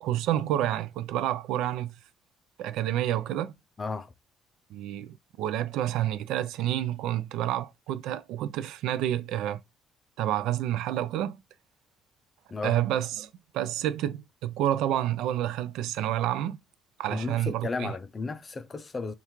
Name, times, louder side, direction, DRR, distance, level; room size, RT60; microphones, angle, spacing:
voice 1, 0.0-1.9 2.6-3.5 4.7-9.6 10.2-11.4 12.6-13.3 13.5-16.6 17.0-17.9, right 12 dB, 85° right, 0.4 m, -29 dB
voice 2, 3.8-4.1 12.5-12.8 17.1-19.1, left 3 dB, 20° left, 0.4 m, -34 dB
5.6 x 2.4 x 3.0 m
cardioid pair, 160°, 0 cm